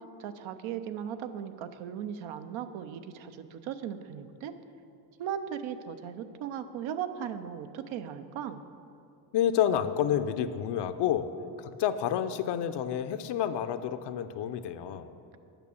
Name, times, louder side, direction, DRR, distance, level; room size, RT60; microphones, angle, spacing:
voice 1, 0.0-4.5 5.2-8.6, right 8 dB, 70° right, 10 dB, 0.7 m, -37 dB
voice 2, 9.3-11.3 11.6-15.1, left 9 dB, 60° left, 10 dB, 0.6 m, -29 dB
9.0 x 6.1 x 7.0 m, 2.6 s
cardioid pair, 95°, 48 cm